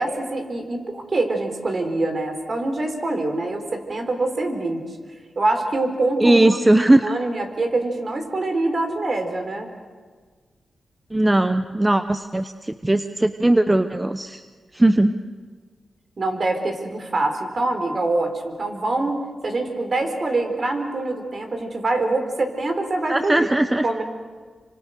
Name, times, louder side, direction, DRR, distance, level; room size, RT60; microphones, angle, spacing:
voice 1, 0.0-4.8 5.4-6.4 7.0-9.7 16.2-23.5 23.8-24.0, right 2 dB, 45° right, 5 dB, 4.3 m, -24 dB
voice 2, 6.2-7.2 11.1-14.4 14.7-15.1 23.1-23.9, right 1 dB, 15° right, 9 dB, 0.9 m, -18 dB
28.5 x 25.5 x 6.6 m, 1.5 s
cardioid pair, 80°, 0 cm